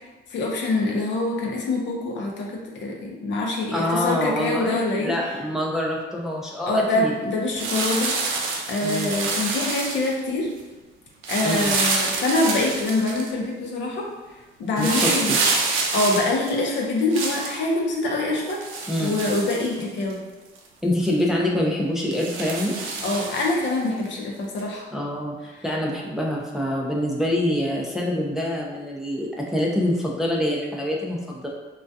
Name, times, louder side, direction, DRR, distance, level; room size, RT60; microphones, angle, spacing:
voice 1, 0.3-5.1 6.7-8.1 8.7-10.5 11.3-14.1 14.6-15.3 15.9-18.6 19.0-20.2 23.0-24.8 25.5-25.6, left 2 dB, 65° left, -1 dB, 0.6 m, -25 dB
voice 2, 3.7-7.1 8.8-9.1 11.4-11.8 14.8-15.4 18.9-19.2 20.8-22.7 24.9-31.5, left 1 dB, ahead, -3 dB, 0.4 m, -25 dB
sound 1, 7.6-10.2 11.2-13.3 14.8-17.6 18.5-20.1 20.6-20.7 21.1-21.2 22.1-23.7 24.6-24.7, right 3 dB, 85° right, 0.4 m, -27 dB
2.3 x 2.2 x 2.6 m, 1.2 s
cardioid pair, 90°, 20 cm